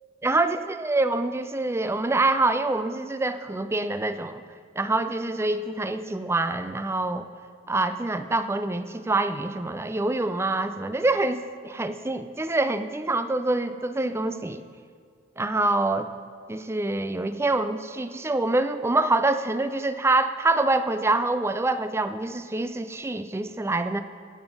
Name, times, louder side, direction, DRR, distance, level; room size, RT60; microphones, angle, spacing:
voice 1, 0.2-4.4 4.8-7.3 7.7-14.6 15.4-16.1 16.5-24.0, right 2 dB, 15° right, 10 dB, 0.4 m, -25 dB
16.0 x 7.1 x 5.3 m, 2.1 s
head